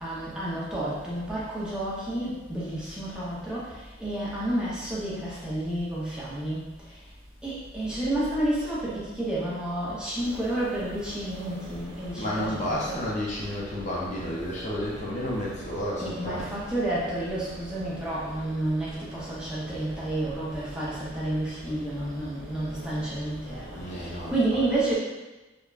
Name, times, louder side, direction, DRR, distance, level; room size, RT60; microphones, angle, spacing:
voice 1, 0.0-7.0 7.4-13.0 16.0-24.9, right 1 dB, 5° right, -9 dB, 0.7 m, -30 dB
sound 1, 10.1-24.3, right 1 dB, 70° right, 0.7 m, -45 dB
voice 2, 12.2-16.5 23.7-24.4, left 1 dB, 40° left, -5 dB, 0.5 m, -31 dB
3.3 x 2.1 x 2.4 m, 1.1 s
head